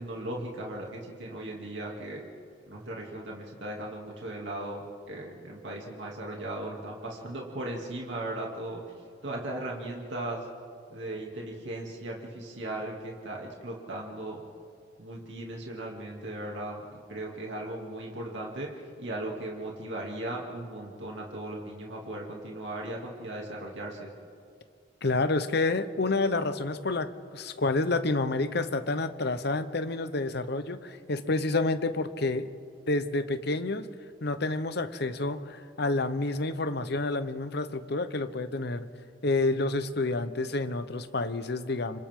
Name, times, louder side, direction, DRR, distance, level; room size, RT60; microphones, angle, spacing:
voice 1, 0.0-2.2 2.7-8.8 9.2-10.5 10.9-14.4 15.0-24.1, right 1 dB, 65° right, -2 dB, 2.7 m, -37 dB
voice 2, 25.0-32.5 32.9-33.9 34.2-38.9 39.2-42.0, left 2 dB, 55° left, 10 dB, 0.9 m, -29 dB
29.5 x 26.0 x 3.8 m, 2.3 s
head